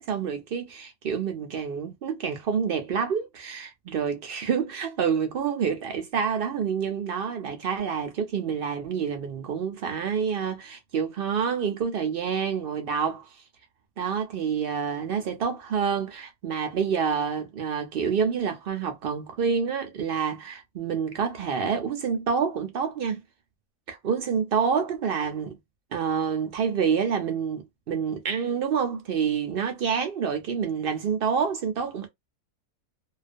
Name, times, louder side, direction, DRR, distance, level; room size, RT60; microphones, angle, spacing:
voice 1, 0.1-13.4 14.0-23.2 23.9-25.6 25.9-32.1, right 6 dB, 80° right, 0.5 m, -28 dB
2.3 x 2.3 x 2.4 m
omnidirectional pair, 1.6 m